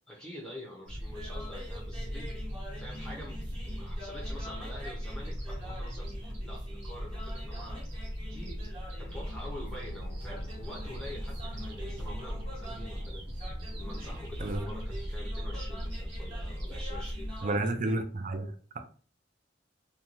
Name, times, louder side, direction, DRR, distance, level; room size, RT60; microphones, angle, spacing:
voice 1, 0.1-2.3 2.8-3.4 3.6-8.6 9.0-13.2 13.7-17.3, left 1 dB, 5° left, 0.6 m, -46 dB
sound 1, 0.9-17.4, equal, 65° right, 0.9 m, -38 dB
sound 2, 1.1-17.9, equal, 25° right, 0.9 m, -47 dB
sound 3, 9.0-13.1, left 1 dB, 90° left, 0.7 m, -52 dB
voice 2, 17.4-18.5, right 2 dB, 45° right, 0.4 m, -30 dB
2.6 x 2.2 x 3.0 m
head